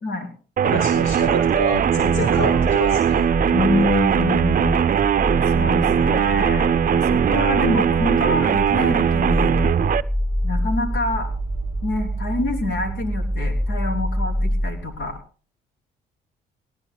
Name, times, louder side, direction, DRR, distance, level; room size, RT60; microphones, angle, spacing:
voice 1, 0.6-3.2, right 2 dB, 90° left, -2 dB, 6.3 m, -26 dB
sound 1, 0.6-10.0, right 8 dB, 40° right, 0.5 m, -20 dB
sound 2, 1.0-15.2, equal, 25° left, 7.9 m, -27 dB
voice 2, 3.5-4.8 5.5-9.6 10.4-11.3 11.8-15.2, left 3 dB, 70° left, 4 dB, 3.3 m, -26 dB
19.0 x 16.0 x 2.3 m, 0.39 s
supercardioid pair, 60°, 21 cm